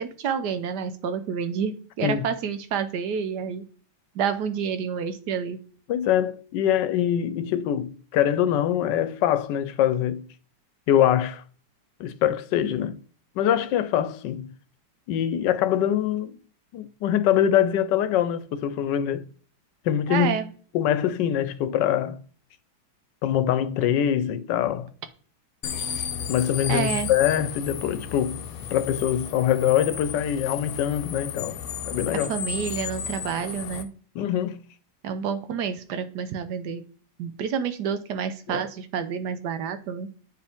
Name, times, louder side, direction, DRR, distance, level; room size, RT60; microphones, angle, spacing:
voice 1, 0.0-3.7 4.1-5.6 20.1-20.5 26.7-27.1 32.1-33.9 35.0-36.8 37.2-40.1, right 7 dB, 70° right, 1.3 m, -29 dB
voice 2, 5.9-10.2 10.9-11.4 12.0-13.0 13.4-14.5 15.1-16.4 16.7-19.2 19.8-20.4 20.7-22.2 23.2-24.9 26.3-28.4 28.7-31.6 31.8-32.3 34.1-34.6 38.5-38.6, left 10 dB, 85° left, 1.3 m, -24 dB
sound 1, 25.6-33.8, left 8 dB, 65° left, 1.0 m, -33 dB
8.8 x 4.8 x 3.5 m
omnidirectional pair, 1.9 m